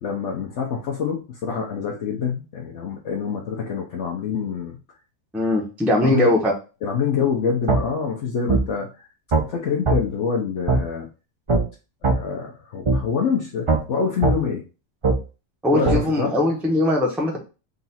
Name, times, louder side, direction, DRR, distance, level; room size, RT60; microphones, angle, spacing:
voice 1, 0.0-4.8 6.0-6.4 6.8-9.1 9.5-11.1 12.0-14.6 15.7-16.4, left 6 dB, 65° left, -1 dB, 1.0 m, -26 dB
voice 2, 5.3-6.5 15.6-17.4, left 1 dB, ahead, -1 dB, 0.7 m, -20 dB
sound 1, 7.7-7.8 8.5-8.6 9.3-9.5 9.9-10.0 10.7-10.8 11.5-11.6 12.0-12.2 12.9-13.0 13.7-13.8 14.2-14.4 15.0-15.2 15.9-16.0, right 3 dB, 35° right, 0.5 m, -18 dB
3.9 x 2.4 x 4.1 m, 0.32 s
omnidirectional pair, 1.4 m